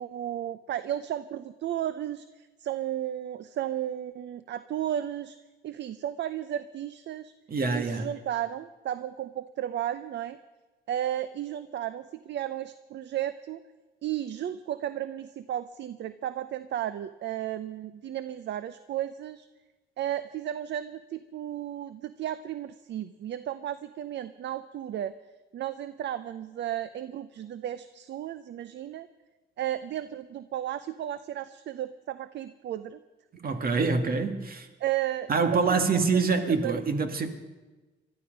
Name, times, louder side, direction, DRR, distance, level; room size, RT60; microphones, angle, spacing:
voice 1, 0.0-5.4 5.6-7.3 7.7-10.4 10.9-13.6 14.0-19.5 20.0-25.1 25.5-29.1 29.6-33.0 33.8-33.9 34.8-36.0 36.5-36.7, right 11 dB, 65° right, 0.6 m, -34 dB
voice 2, 7.5-8.1 33.4-34.7 35.3-37.3, right 4 dB, 50° right, 1.8 m, -25 dB
20.5 x 13.0 x 5.3 m
cardioid pair, 90°, 20 cm